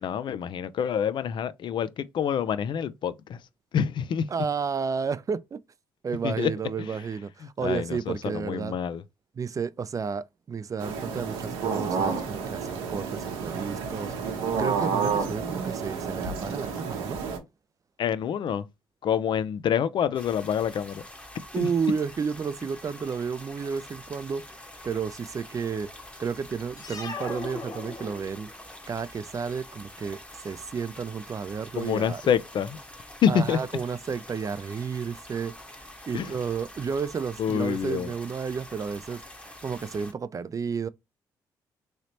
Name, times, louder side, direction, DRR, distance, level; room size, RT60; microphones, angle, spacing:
voice 1, 0.0-3.4 3.7-4.3 6.2-6.5 7.6-9.0 18.0-18.6 19.0-21.0 21.6-21.7 31.7-32.8 33.2-33.6 36.1-36.3 37.4-38.1, left 8 dB, 60° left, 0.4 m, -27 dB
voice 2, 4.3-5.6 6.0-8.8 9.4-17.2 21.5-24.5 24.8-25.9 26.2-28.5 28.9-32.2 33.3-40.9, right 6 dB, 35° right, 0.4 m, -32 dB
sound 1, 10.8-17.4, right 5 dB, 85° right, 0.8 m, -30 dB
sound 2, 20.1-40.1, left 1 dB, 15° left, 0.9 m, -46 dB
sound 3, 26.8-28.6, left 3 dB, 45° left, 1.2 m, -38 dB
3.2 x 2.9 x 2.7 m
supercardioid pair, 55°, 9 cm